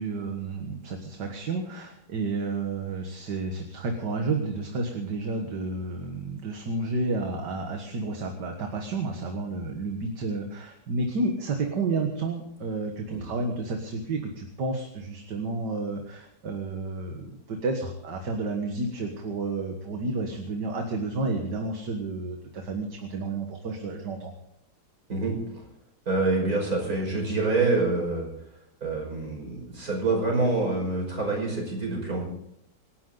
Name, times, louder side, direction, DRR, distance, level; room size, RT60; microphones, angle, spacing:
voice 1, 0.0-24.3, right 3 dB, 70° right, 3 dB, 2.2 m, -31 dB
voice 2, 25.1-25.6 26.1-28.3 28.8-32.2, right 3 dB, 50° right, 0 dB, 5.9 m, -26 dB
26.5 x 11.5 x 4.0 m, 0.76 s
omnidirectional pair, 1.9 m